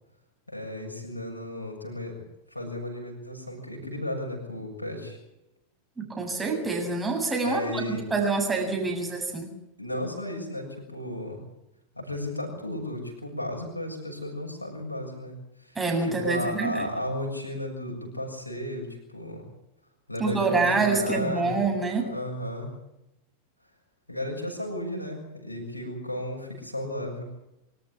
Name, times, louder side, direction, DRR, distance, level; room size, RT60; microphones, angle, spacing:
voice 1, 0.5-2.2 2.5-5.2 7.4-8.0 8.6-8.7 9.8-11.4 12.0-15.8 16.0-19.5 20.1-21.6 21.9-22.7 24.1-27.3, left 1 dB, 85° left, 1 dB, 7.1 m, -34 dB
voice 2, 6.0-7.8 8.1-9.5 15.8-16.9 20.2-22.1, right 3 dB, 15° right, 2 dB, 7.7 m, -26 dB
25.5 x 14.0 x 9.9 m, 0.87 s
figure-of-eight pair, 90°, 0 cm